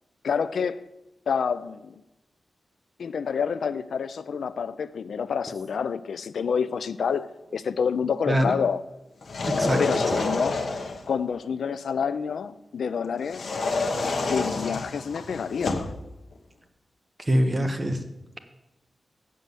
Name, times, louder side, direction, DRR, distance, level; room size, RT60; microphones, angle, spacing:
voice 1, 0.2-0.8 1.3-2.0 3.0-8.8 9.8-10.6 11.1-13.5 14.3-15.9, left 6 dB, 85° left, 0.4 m, -28 dB
sound 1, 9.2-11.1 13.3-16.0, left 3 dB, 65° left, 1.1 m, -28 dB
voice 2, 9.6-10.2 17.2-18.0, equal, 20° right, 1.1 m, -24 dB
7.6 x 6.8 x 8.0 m
wide cardioid pair, 125°, 0 cm